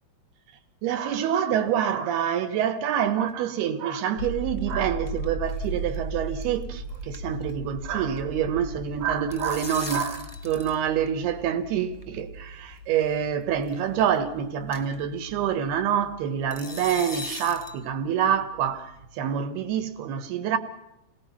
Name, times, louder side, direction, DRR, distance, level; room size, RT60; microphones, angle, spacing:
voice 1, 0.8-20.6, right 9 dB, 80° right, 3.4 m, -26 dB
sound 1, 4.2-18.0 18.3-19.2, right 2 dB, 45° left, 5.9 m, -38 dB
sound 2, 4.5-5.2 5.5-5.7 5.9-6.0 6.4-6.6 6.9-8.2 9.0-10.8 11.1-11.2 12.0-12.1 13.0-13.2 13.6-13.7 14.1-14.2 14.7-15.0 16.5-17.8, left 2 dB, 10° left, 0.9 m, -39 dB
29.5 x 19.0 x 5.8 m
omnidirectional pair, 4.6 m